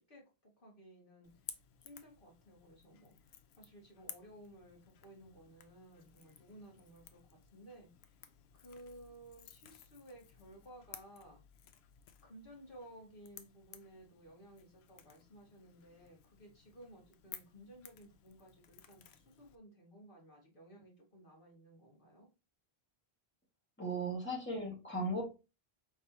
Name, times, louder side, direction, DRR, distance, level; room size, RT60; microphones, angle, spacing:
voice 1, 0.0-7.2 7.5-8.2 8.5-11.4 12.2-22.3, right 1 dB, 55° left, -2 dB, 2.1 m, -57 dB
Crackle / Crack, 1.2-19.6, left 9 dB, 85° left, 0.8 m, -56 dB
voice 2, 23.8-25.2, right 1 dB, 10° left, -3 dB, 1.8 m, -37 dB
4.5 x 3.9 x 2.8 m, 0.29 s
omnidirectional pair, 1.0 m